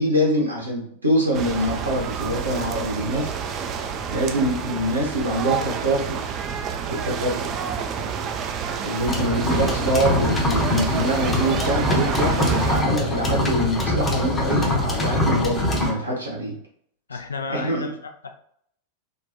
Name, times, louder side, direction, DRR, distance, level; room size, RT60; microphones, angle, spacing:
voice 1, 0.0-3.3 4.1-6.2 6.9-7.5 8.8-16.5 17.5-17.9, right 1 dB, 80° right, -3 dB, 1.0 m, -24 dB
sound 1, 1.3-12.8, right 7 dB, 35° right, 0.3 m, -29 dB
sound 2, 9.1-15.9, left 1 dB, 15° left, 0.7 m, -23 dB
voice 2, 17.1-18.3, left 4 dB, 75° left, 6 dB, 0.4 m, -33 dB
3.4 x 2.3 x 2.7 m, 0.67 s
figure-of-eight pair, 90°, 0 cm